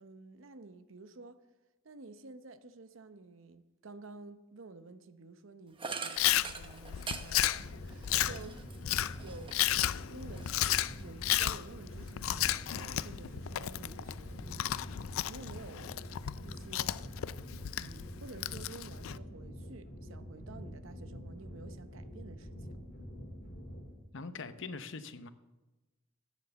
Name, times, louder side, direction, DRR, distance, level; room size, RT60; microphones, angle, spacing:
voice 1, 0.0-1.4 1.8-10.5 10.9-14.9 15.3-16.1 16.4-17.1 17.8-22.8, right 3 dB, 70° right, 0.8 m, -51 dB
sound 1, 5.8-9.8 10.2-11.3, right 5 dB, 25° right, 0.9 m, -44 dB
Chewing mastication, 6.2-19.2, left 13 dB, 85° left, 0.4 m, -33 dB
sound 2, 7.5-23.9, equal, 50° left, 2.5 m, -46 dB
voice 2, 24.1-25.3, left 4 dB, 65° left, 0.8 m, -42 dB
12.0 x 9.3 x 6.9 m
head